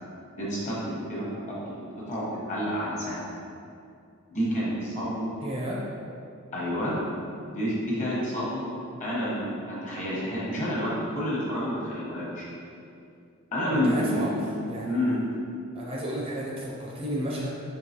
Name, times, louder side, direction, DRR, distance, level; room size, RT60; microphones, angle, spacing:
voice 1, 0.4-1.5 1.9-3.2 4.3-5.3 6.5-7.0 7.4-8.7 9.0-12.5 13.5-14.3 14.8-15.2, equal, 35° left, -7 dB, 1.1 m, -29 dB
voice 2, 5.4-5.8 13.8-15.2 15.7-17.5, equal, 25° right, -4 dB, 0.5 m, -33 dB
4.6 x 2.9 x 2.8 m, 2.5 s
head